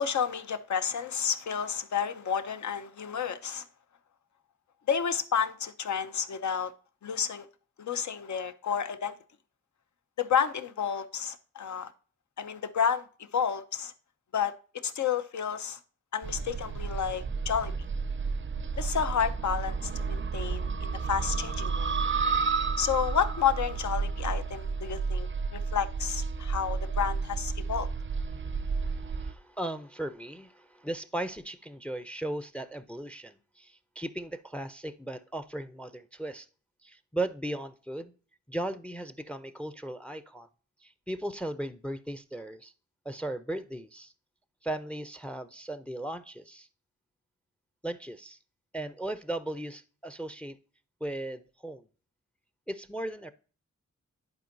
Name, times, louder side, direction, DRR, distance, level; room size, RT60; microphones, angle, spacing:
voice 1, 0.0-3.6 4.9-6.7 7.0-7.5 7.8-9.1 10.2-11.9 12.4-13.1 13.3-13.9 14.3-14.5 14.8-15.8 16.1-17.7 18.8-21.9 22.8-27.9, left 7 dB, 70° left, 0.8 m, -30 dB
sound 1, 16.2-29.3, right 5 dB, 40° right, 0.5 m, -31 dB
voice 2, 28.3-36.5 36.8-38.1 38.5-40.5 40.8-42.7 43.0-44.1 44.6-46.7 47.8-48.4 48.7-50.6 51.0-51.9 52.7-53.3, right 1 dB, 5° left, 0.5 m, -37 dB
10.5 x 4.4 x 2.6 m
cardioid pair, 60°, 31 cm